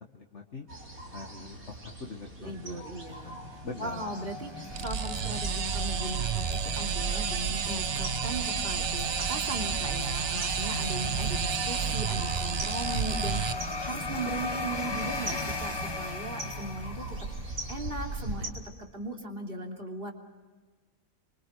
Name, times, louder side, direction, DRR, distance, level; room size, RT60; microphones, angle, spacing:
voice 1, 0.1-0.7 1.1-2.8 3.2-3.4 3.6-4.1, left 3 dB, 55° left, 2 dB, 1.8 m, -42 dB
sound 1, 0.7-18.5, right 1 dB, 75° right, 4.3 m, -41 dB
voice 2, 2.4-17.2 17.4-18.6 18.9-20.1, right 2 dB, 40° right, 1 dB, 3.2 m, -38 dB
sound 2, 3.0-17.6, left 3 dB, 20° left, 0.9 m, -38 dB
sound 3, 4.7-13.5, right 7 dB, 60° right, 1.1 m, -31 dB
25.5 x 24.5 x 6.5 m, 1.4 s
omnidirectional pair, 1.5 m